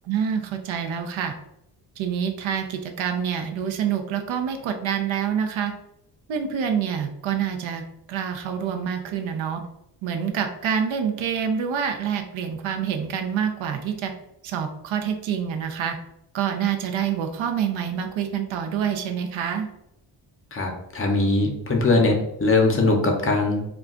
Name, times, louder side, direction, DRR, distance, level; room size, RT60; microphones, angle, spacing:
voice 1, 0.0-1.3 2.0-5.7 6.3-7.8 8.1-9.6 10.0-14.1 14.4-16.0 16.3-19.7, right 8 dB, 85° right, 6 dB, 0.6 m, -26 dB
voice 2, 20.5-23.7, left 2 dB, 30° left, 2 dB, 0.6 m, -21 dB
2.3 x 2.2 x 3.6 m, 0.81 s
cardioid pair, 115°, 45 cm